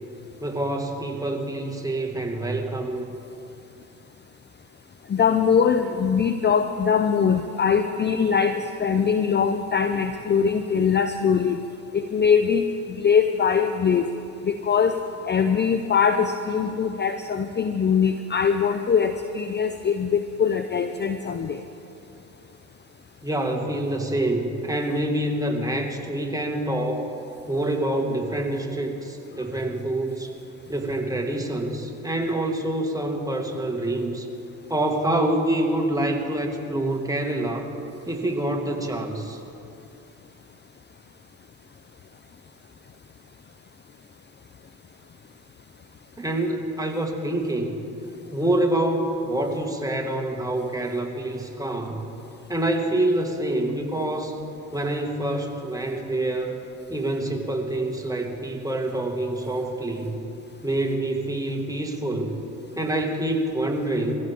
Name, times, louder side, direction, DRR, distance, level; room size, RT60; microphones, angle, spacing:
voice 1, 0.4-3.1 23.2-27.1 27.5-30.3 30.7-34.3 34.7-37.7 38.1-39.4 46.2-47.9 48.3-52.0 52.5-54.4 54.7-56.6 56.9-60.2 60.6-62.4 62.8-64.1, right 1 dB, 10° right, 2 dB, 2.1 m, -26 dB
voice 2, 5.1-11.6 11.9-14.1 14.4-15.0 15.3-21.6, left 6 dB, 25° left, 8 dB, 0.7 m, -22 dB
22.0 x 15.5 x 3.8 m, 2.8 s
hypercardioid pair, 55°, 42 cm